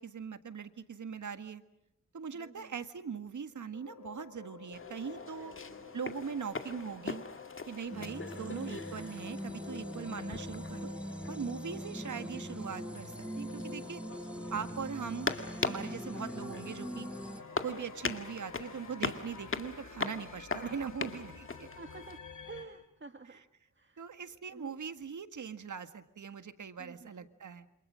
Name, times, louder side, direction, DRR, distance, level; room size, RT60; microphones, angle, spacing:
voice 1, 0.0-1.6 2.1-5.5 5.9-7.2 7.7-10.9 11.3-14.0 14.5-17.1 17.6-21.7 24.0-27.7, right 6 dB, 80° right, 9 dB, 1.8 m, -41 dB
voice 2, 2.3-2.7 5.4-6.0 20.6-20.8 21.8-22.2 22.4-23.4 23.7-24.0 24.5-24.8 26.8-27.3, right 4 dB, 40° right, 7 dB, 1.5 m, -51 dB
sound 1, 3.7-22.7, left 5 dB, 90° left, 5.8 m, -51 dB
sound 2, 4.7-22.2, left 4 dB, 45° left, 2.1 m, -42 dB
sound 3, 7.9-17.4, right 1 dB, 5° right, 1.6 m, -42 dB
28.0 x 27.0 x 6.3 m, 0.84 s
wide cardioid pair, 95°, 30 cm